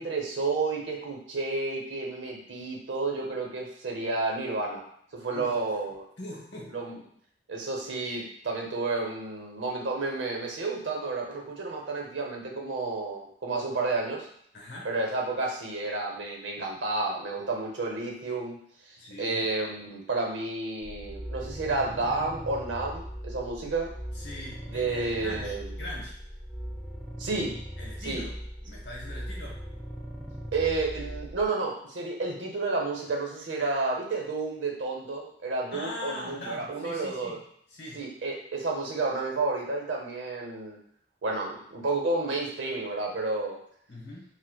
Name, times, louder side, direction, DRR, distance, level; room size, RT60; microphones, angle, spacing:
voice 1, 0.0-4.8 5.1-6.0 6.7-7.0 7.5-14.3 14.8-18.6 18.9-23.9 24.7-25.7 27.2-27.5 28.0-28.2 30.5-37.4 37.9-40.8 41.2-43.6, right 3 dB, 90° right, 0 dB, 0.7 m, -31 dB
voice 2, 6.2-6.8 14.5-14.9 19.0-19.5 24.1-26.1 27.8-28.3 28.7-29.6 35.7-37.4 37.7-38.0 43.9-44.2, left 1 dB, 70° left, -3 dB, 1.0 m, -41 dB
sound 1, 20.8-31.5, equal, ahead, 0.3 m, -39 dB
4.6 x 2.0 x 2.2 m, 0.67 s
head